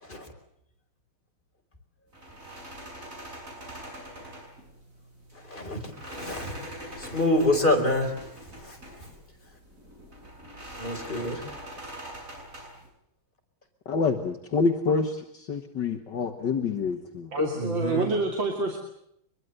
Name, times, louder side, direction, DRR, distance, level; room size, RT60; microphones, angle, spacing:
sound 1, 2.1-12.9, right 1 dB, 35° right, 7.9 m, -43 dB
voice 1, 5.3-8.1 8.4-9.1 10.8-11.4 17.5-18.1, left 1 dB, 20° left, 3 dB, 4.8 m, -28 dB
voice 2, 13.9-17.3, left 4 dB, 60° left, 5 dB, 2.1 m, -27 dB
voice 3, 17.3-18.8, right 2 dB, 65° right, 2 dB, 3.4 m, -27 dB
24.0 x 22.5 x 8.0 m, 0.73 s
omnidirectional pair, 2.3 m